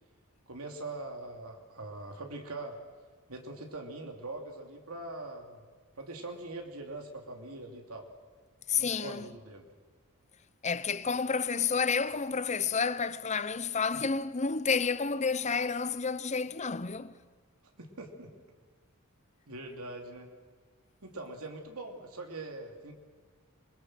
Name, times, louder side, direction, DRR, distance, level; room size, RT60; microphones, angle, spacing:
voice 1, 0.5-2.8 3.3-5.6 6.0-8.1 8.7-9.6 17.8-18.3 19.5-20.3 21.0-22.9, right 2 dB, 75° right, 2.8 m, -42 dB
voice 2, 8.7-9.3 10.6-17.1, left 5 dB, 30° left, 0.7 m, -30 dB
26.5 x 22.0 x 7.6 m
head